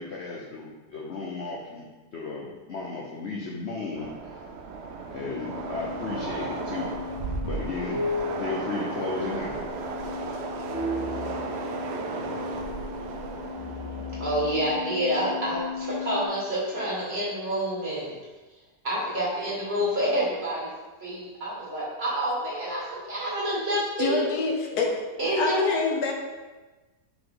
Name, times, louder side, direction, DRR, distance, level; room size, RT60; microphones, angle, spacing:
voice 1, 0.0-4.4 5.1-6.9 7.4-8.0 8.4-9.7, left 3 dB, 55° left, -3 dB, 0.8 m, -34 dB
Train, 4.0-16.2, right 4 dB, 70° right, 0.6 m, -35 dB
sound 1, 5.1-16.3, left 4 dB, 35° left, 1.6 m, -36 dB
voice 2, 14.2-18.2 18.8-20.7 21.0-24.3 25.2-25.7, equal, 40° right, -6 dB, 2.2 m, -28 dB
voice 3, 24.0-25.0 25.4-26.1, left 4 dB, 75° left, 1 dB, 1.3 m, -26 dB
5.5 x 4.8 x 3.9 m, 1.2 s
omnidirectional pair, 1.7 m